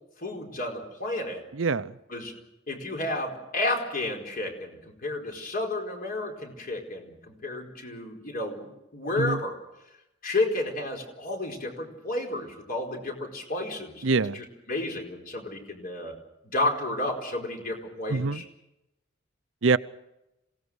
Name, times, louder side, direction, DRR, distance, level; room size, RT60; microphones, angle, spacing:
voice 1, 0.2-1.4 2.1-2.3 2.7-9.6 10.2-16.1 16.4-18.4, left 2 dB, 45° left, 2 dB, 4.6 m, -32 dB
voice 2, 1.6-1.9 9.2-9.4 14.0-14.4 18.1-18.4 19.6-19.8, right 4 dB, 75° right, 14 dB, 0.7 m, -24 dB
27.0 x 17.5 x 6.4 m, 0.90 s
head